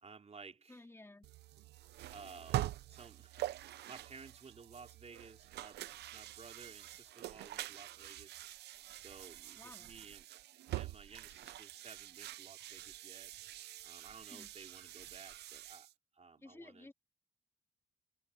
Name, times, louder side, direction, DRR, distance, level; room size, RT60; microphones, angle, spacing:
voice 1, 0.0-0.8 2.1-3.6 3.9-5.9 6.1-8.4 9.0-10.3 10.7-13.3 13.8-15.9 16.1-16.9, right 5 dB, 40° right, 3.8 m, -55 dB
voice 2, 0.7-1.3 9.6-9.9 14.3-14.5 16.4-16.9, left 2 dB, 15° left, 2.6 m, -54 dB
sound 1, 1.2-15.9, right 14 dB, 90° right, 0.8 m, -45 dB
cardioid pair, 70°, 17 cm